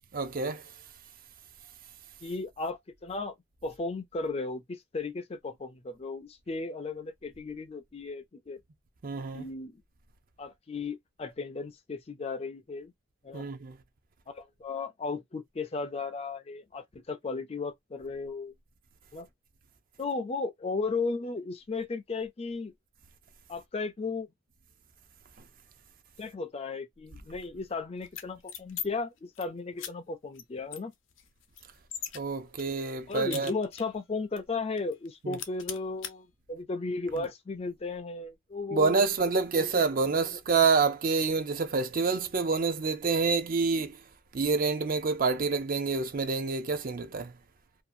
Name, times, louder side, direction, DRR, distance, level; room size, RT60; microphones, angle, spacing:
voice 1, 0.1-0.7 9.0-9.5 13.3-13.8 32.1-33.5 35.2-35.4 37.2-37.3 38.7-44.0 44.3-47.3, right 4 dB, 45° right, 0.5 m, -27 dB
voice 2, 2.2-3.4 3.6-8.6 9.3-9.8 10.4-12.9 13.2-13.5 14.3-18.5 19.1-19.3 20.0-22.7 23.5-24.3 26.2-30.9 33.1-39.0 39.6-39.7, left 3 dB, 30° left, 0.4 m, -35 dB
sound 1, 28.1-28.9 29.2-29.4 29.8-29.9 30.3-30.4 30.7-32.2 32.6-34.0 34.4-34.5 34.8-35.1 35.3-36.1, left 10 dB, 70° left, 0.6 m, -40 dB
2.7 x 2.4 x 2.5 m
head